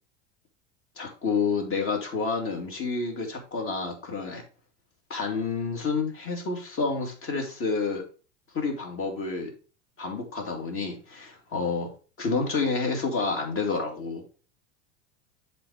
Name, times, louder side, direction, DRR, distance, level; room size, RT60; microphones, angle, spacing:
voice 1, 1.0-4.4 5.1-8.0 8.5-9.5 10.0-11.9 12.2-14.3, left 4 dB, 35° left, 3 dB, 2.4 m, -29 dB
7.5 x 3.8 x 4.7 m, 0.37 s
hypercardioid pair, 95°, 35 cm